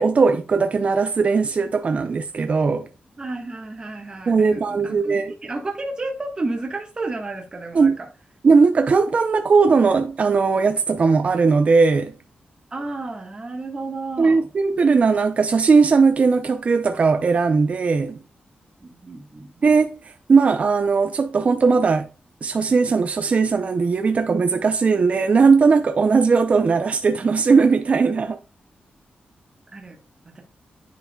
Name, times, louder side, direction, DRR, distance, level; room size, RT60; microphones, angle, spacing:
voice 1, 0.0-2.9 4.3-5.3 7.7-8.0 8.4-12.1 14.2-18.2 19.6-22.1 22.4-28.4, right 4 dB, 40° right, 0.5 m, -18 dB
voice 2, 3.2-8.1 12.7-14.5 18.8-19.7 29.7-30.0 30.2-30.4, right 2 dB, 25° right, 1.3 m, -32 dB
10.0 x 4.7 x 2.2 m
wide cardioid pair, 145°, 3 cm